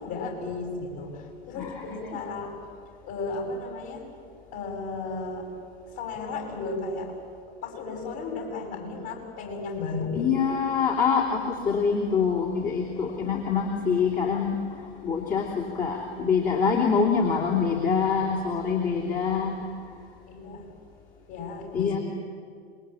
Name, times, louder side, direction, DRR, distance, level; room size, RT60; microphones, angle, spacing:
voice 1, 0.0-2.6 3.0-4.1 4.5-5.5 5.9-7.2 7.6-10.4 20.3-20.7 21.3-22.0, left 3 dB, 45° left, 2 dB, 7.2 m, -34 dB
voice 2, 10.1-19.6 21.7-22.0, left 6 dB, 25° left, -2 dB, 3.1 m, -25 dB
26.0 x 22.0 x 9.1 m, 2.3 s
figure-of-eight pair, 100°, 32 cm